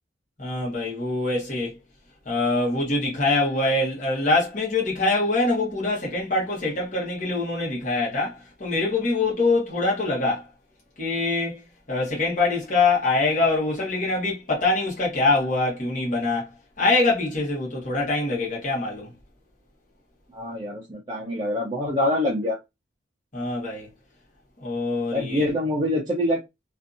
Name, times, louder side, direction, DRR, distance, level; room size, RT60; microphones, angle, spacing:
voice 1, 0.4-1.7 2.3-10.5 11.0-11.6 11.9-16.5 16.8-19.1 23.3-23.9 24.6-25.4, left 2 dB, 45° left, 1.1 m, -24 dB
voice 2, 20.3-22.6 25.1-26.4, left 1 dB, 25° right, 0.6 m, -25 dB
2.6 x 2.5 x 2.4 m
head